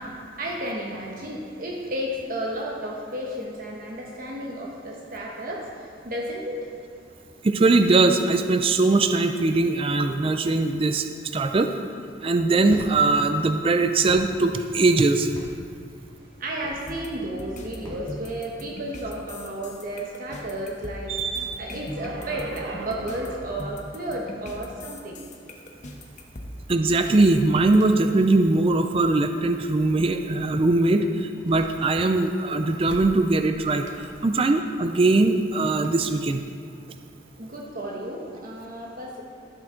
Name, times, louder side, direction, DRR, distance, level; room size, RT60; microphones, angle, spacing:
voice 1, 0.0-6.7 16.4-25.2 37.4-39.2, right 1 dB, 50° right, -2 dB, 1.1 m, -33 dB
voice 2, 7.4-11.1 11.3-11.7 12.2-15.3 26.7-33.9 34.2-36.4, right 2 dB, 30° right, 7 dB, 0.4 m, -21 dB
sound 1, 12.7-18.9, equal, 20° left, 2.3 m, -44 dB
sound 2, 16.9-27.8, left 1 dB, 45° left, 1.0 m, -39 dB
sound 3, 19.8-24.8 25.2-26.3 27.1-27.2 27.8-27.9 28.6-29.1 30.1-30.9 31.4-32.2 32.5-33.6 33.8-35.5 35.8-36.1, right 5 dB, 85° right, 0.8 m, -40 dB
14.5 x 6.2 x 3.8 m, 2.5 s
head